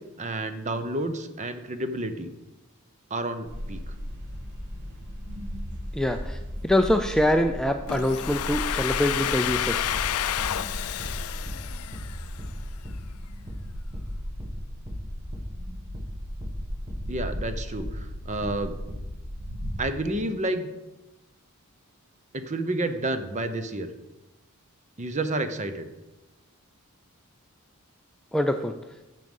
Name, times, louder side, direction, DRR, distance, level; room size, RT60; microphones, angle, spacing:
voice 1, 0.2-2.3 3.1-3.8 17.1-18.7 19.8-20.7 22.3-23.9 25.0-25.9, right 2 dB, 35° right, 9 dB, 0.8 m, -30 dB
sound 1, 3.5-19.8, equal, 55° right, 1.7 m, -36 dB
voice 2, 5.9-6.4 6.6-9.8 28.3-28.7, left 1 dB, 5° left, 6 dB, 0.4 m, -24 dB
Domestic sounds home sounds, 7.9-12.6, left 11 dB, 80° left, 0.4 m, -30 dB
sound 2, 9.4-9.7 9.9-10.1 10.4-10.6 11.0-11.2 11.5-11.7 11.9-12.1 12.4-12.6 12.8-13.1 13.5-13.7 13.9-14.1 14.4-14.6 14.9-15.1 15.3-15.5 15.9-16.1 16.4-16.6 16.9-17.1 17.3-17.5 17.8-18.0 18.4-18.6 18.9-19.1, equal, 15° right, 1.5 m, -39 dB
11.0 x 7.6 x 5.4 m, 1.0 s
head